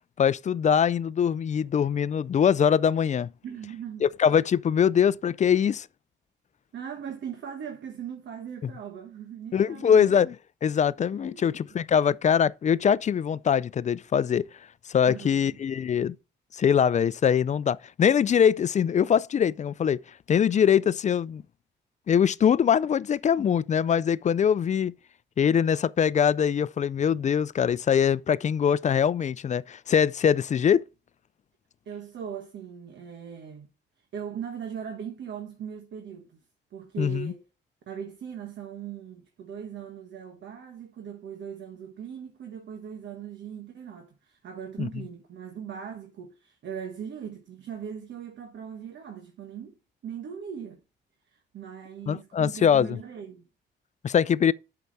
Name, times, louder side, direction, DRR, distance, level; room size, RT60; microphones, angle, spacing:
voice 1, 0.2-3.3 4.0-5.9 9.5-10.3 10.6-14.5 14.9-16.2 16.5-20.0 20.3-21.4 22.1-24.9 25.4-30.8 37.0-37.3 44.8-44.9 52.1-53.0 54.0-54.5, left 8 dB, 40° left, 0.4 m, -23 dB
voice 2, 3.4-4.1 6.7-10.1 10.9-11.5 15.1-15.6 31.8-33.7 34.0-36.4 36.7-37.5 37.9-50.8 51.3-53.5, right 8 dB, 70° right, 1.3 m, -39 dB
8.3 x 5.9 x 4.1 m
cardioid pair, 85°, 19 cm